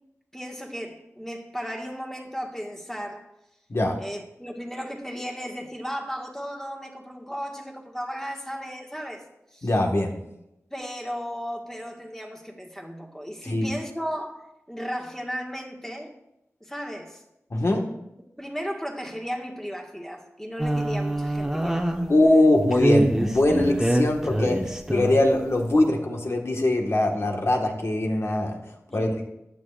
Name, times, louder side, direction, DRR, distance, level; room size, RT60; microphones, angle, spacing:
voice 1, 0.3-3.3 4.0-9.3 9.5-9.7 10.7-16.1 16.6-17.2 18.4-22.3 28.9-29.1, equal, 10° left, 1 dB, 1.7 m, -35 dB
voice 2, 9.6-10.1 13.4-13.6 17.5-17.8 22.1-24.6 24.9-28.6 28.9-29.2, left 1 dB, 55° left, 2 dB, 1.6 m, -22 dB
sound 1, 20.6-22.3 22.7-25.4, right 1 dB, 10° right, 1.1 m, -24 dB
15.0 x 9.7 x 2.5 m, 0.87 s
wide cardioid pair, 60°, 5 cm